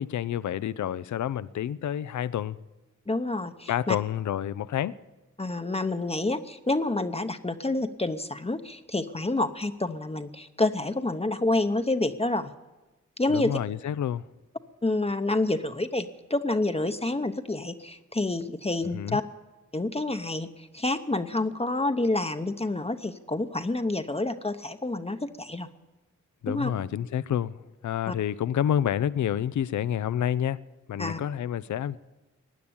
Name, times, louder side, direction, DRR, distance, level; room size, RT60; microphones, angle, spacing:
voice 1, 0.0-2.6 3.7-4.9 13.3-14.2 18.9-19.2 26.4-27.5 27.8-30.6 30.9-32.0, left 10 dB, 70° left, 0.5 m, -28 dB
voice 2, 3.1-4.0 5.4-12.5 13.2-13.6 14.8-19.2 19.7-25.7 26.5-26.7 28.1-28.2 31.0-31.2, left 2 dB, 20° left, 0.8 m, -28 dB
16.0 x 9.6 x 8.7 m
cardioid pair, 55°, 30 cm